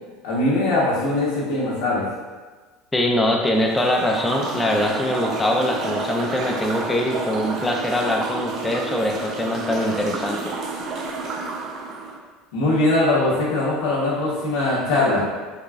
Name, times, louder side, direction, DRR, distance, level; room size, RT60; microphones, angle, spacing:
voice 1, 0.2-2.0 12.5-15.2, left 2 dB, 80° left, -6 dB, 1.3 m, -21 dB
voice 2, 2.9-10.5, left 1 dB, 15° left, 1 dB, 0.6 m, -23 dB
sound 1, 3.5-12.2, right 3 dB, 50° right, 0.5 m, -30 dB
4.8 x 2.3 x 2.5 m, 1.3 s
supercardioid pair, 95°, 0 cm